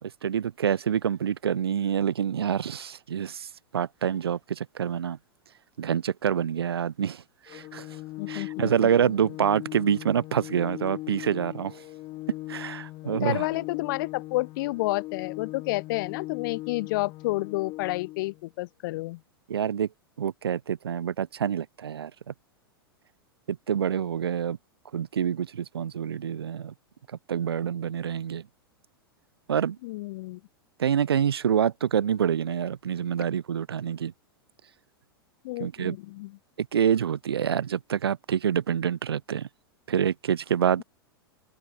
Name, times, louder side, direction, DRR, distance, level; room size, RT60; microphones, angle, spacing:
voice 1, 0.0-3.5 3.7-5.2 5.8-7.9 8.3-11.8 12.5-13.4 19.5-19.9 20.2-22.3 23.5-24.6 24.9-26.7 27.3-28.4 29.5-29.8 30.8-34.1 35.6-35.9 36.6-39.5 39.9-40.8, right 8 dB, 80° right, 1.7 m, -27 dB
Organ, 7.5-18.4, left 18 dB, 40° left, 5.7 m, -39 dB
voice 2, 8.2-9.1 13.0-19.2 29.8-30.4 35.4-36.3, left 20 dB, 60° left, 1.7 m, -30 dB
open air
hypercardioid pair, 105°, 13 cm